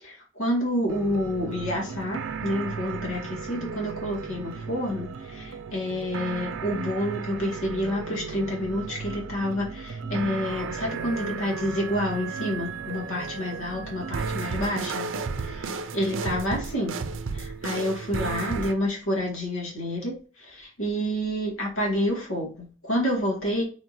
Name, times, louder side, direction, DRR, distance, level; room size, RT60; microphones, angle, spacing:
voice 1, 0.0-15.1 15.4-17.0 17.3-23.6, left 1 dB, 80° left, -2 dB, 2.1 m, -29 dB
sound 1, 0.9-18.7, right 5 dB, 65° right, 0.5 m, -34 dB
4.5 x 4.3 x 2.7 m, 0.37 s
head